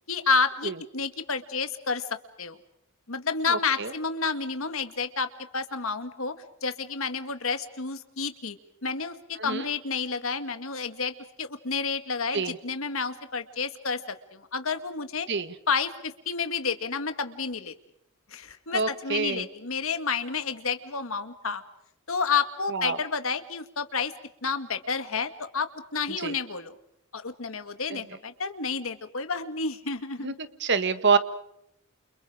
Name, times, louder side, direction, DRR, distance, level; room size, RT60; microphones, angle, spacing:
voice 1, 0.1-2.1 2.4-2.6 3.1-6.3 6.6-8.6 8.8-15.3 15.7-17.7 18.3-21.6 22.1-24.1 24.4-26.7 27.1-30.3, left 5 dB, 70° left, 9 dB, 2.0 m, -30 dB
voice 2, 3.5-3.9 9.4-9.6 12.3-12.5 15.3-15.5 18.7-19.4 22.7-23.0 26.2-26.3 27.9-28.0 30.2-30.3 30.6-31.2, right 5 dB, 55° right, 11 dB, 1.6 m, -26 dB
29.5 x 29.5 x 5.0 m, 0.78 s
head